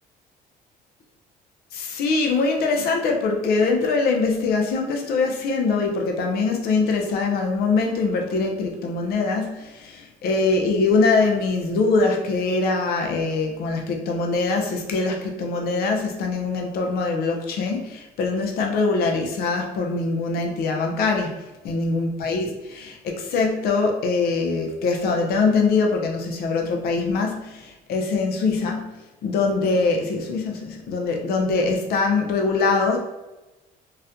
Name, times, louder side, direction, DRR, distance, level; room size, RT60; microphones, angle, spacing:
voice 1, 1.7-21.3 21.6-28.9 29.2-33.0, left 3 dB, 65° left, 2 dB, 0.6 m, -23 dB
4.0 x 2.1 x 2.5 m, 1.0 s
cardioid pair, 110°, 17 cm